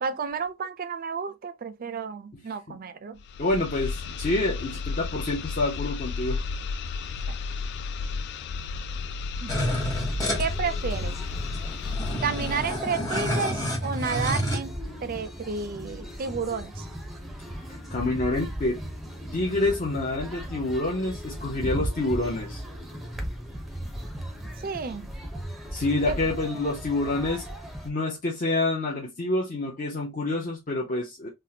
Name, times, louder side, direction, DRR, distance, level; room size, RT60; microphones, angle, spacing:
voice 1, 0.0-3.2 9.4-9.5 10.4-11.1 12.2-14.7 15.0-16.8 24.6-25.1 26.1-26.2, right 5 dB, 45° right, 0.4 m, -31 dB
sound 1, 3.2-12.8, left 4 dB, 60° left, 0.3 m, -33 dB
voice 2, 3.4-6.4 17.9-18.8 19.3-22.6 25.7-27.4 27.8-31.3, left 2 dB, 45° left, 0.7 m, -27 dB
sound 2, 9.5-10.5 11.2-11.3 11.4-14.6, equal, 15° left, 1.0 m, -29 dB
sound 3, 9.5-27.9, equal, ahead, 0.6 m, -37 dB
3.5 x 2.1 x 2.7 m
head